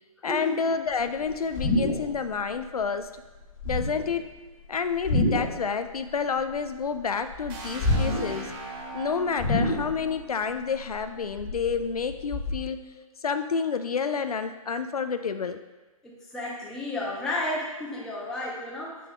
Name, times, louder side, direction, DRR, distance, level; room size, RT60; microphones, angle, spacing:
voice 1, 0.2-3.1 3.7-4.2 4.7-8.5 8.9-12.8 13.2-15.6, left 5 dB, 85° left, 9 dB, 0.5 m, -29 dB
sound 1, 1.0-2.4 2.6-3.0 3.5-4.2 4.9-5.7 6.0-7.0 7.3-8.5 8.8-8.9 9.3-10.2 10.6-12.5, left 1 dB, 25° left, 1.1 m, -28 dB
sound 2, 7.5-11.3, right 2 dB, 35° right, 1.7 m, -40 dB
voice 2, 16.0-19.0, left 1 dB, 5° left, -6 dB, 0.9 m, -32 dB
7.6 x 6.8 x 2.4 m, 1.2 s
figure-of-eight pair, 140°, 19 cm